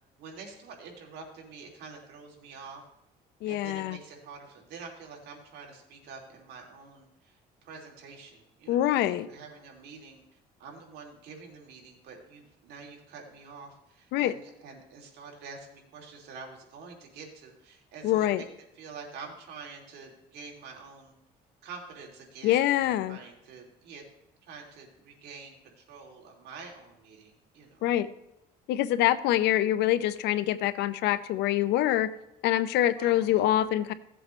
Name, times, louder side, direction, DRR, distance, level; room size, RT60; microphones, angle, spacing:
voice 1, 0.2-2.8 3.5-18.5 18.7-21.2 21.6-24.1 24.4-27.8 33.0-33.4, right 4 dB, 75° right, 0 dB, 2.9 m, -47 dB
voice 2, 3.4-4.0 8.7-9.3 14.1-14.3 18.0-18.4 22.4-23.2 27.8-28.1 28.7-32.1 32.4-33.9, left 13 dB, 85° left, 14 dB, 0.7 m, -25 dB
16.5 x 7.8 x 3.2 m, 0.88 s
cardioid pair, 110°, 17 cm